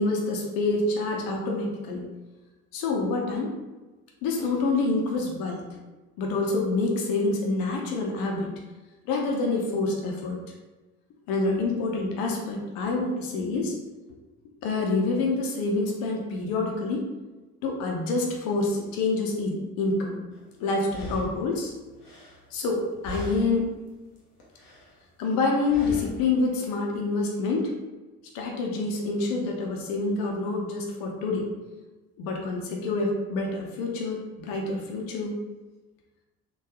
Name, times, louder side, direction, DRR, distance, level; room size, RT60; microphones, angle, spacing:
voice 1, 0.0-2.0 2.7-3.5 4.2-5.8 6.2-8.5 9.1-10.4 11.3-13.8 14.6-17.0 17.6-20.2 20.6-21.7 22.5-23.7 25.2-27.7 28.3-31.4 32.2-35.4, left 3 dB, 50° left, 0 dB, 0.7 m, -27 dB
sound 1, 20.3-20.4 20.9-22.8 23.0-23.7 24.1-25.0 25.7-26.3, equal, 85° left, 0.7 m, -40 dB
3.7 x 2.3 x 2.9 m, 1.2 s
figure-of-eight pair, 55°, 45 cm